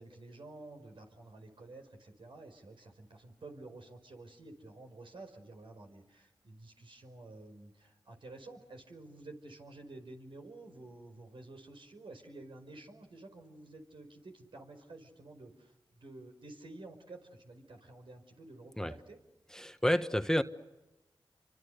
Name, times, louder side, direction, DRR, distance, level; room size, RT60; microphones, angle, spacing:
voice 1, 0.0-19.2, right 2 dB, 75° right, 4 dB, 5.1 m, -51 dB
voice 2, 19.5-20.4, equal, 5° left, 9 dB, 1.3 m, -29 dB
29.5 x 25.0 x 6.8 m, 1.0 s
cardioid pair, 40°, 9 cm